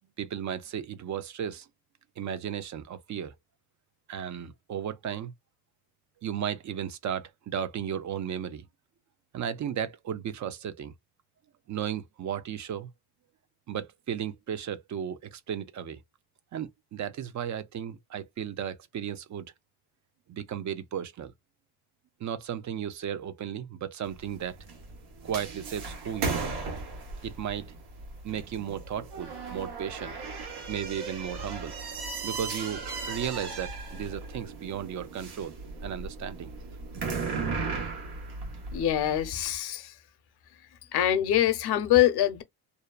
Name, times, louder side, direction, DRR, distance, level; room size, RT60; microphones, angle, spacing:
voice 1, 0.2-1.7 2.2-3.3 4.1-5.3 6.2-8.6 9.3-10.9 11.7-12.9 13.7-16.0 16.5-19.5 20.3-21.3 22.2-24.6 25.2-26.5 27.2-27.7 28.2-30.2 30.7-31.8 32.2-35.6 35.8-36.5, right 9 dB, 45° right, 0.5 m, -35 dB
sound 1, 24.0-39.5, right 4 dB, 80° right, 1.2 m, -37 dB
voice 2, 38.7-40.0 40.9-42.4, left 12 dB, 75° left, 0.8 m, -24 dB
2.7 x 2.2 x 2.3 m
cardioid pair, 95°, 39 cm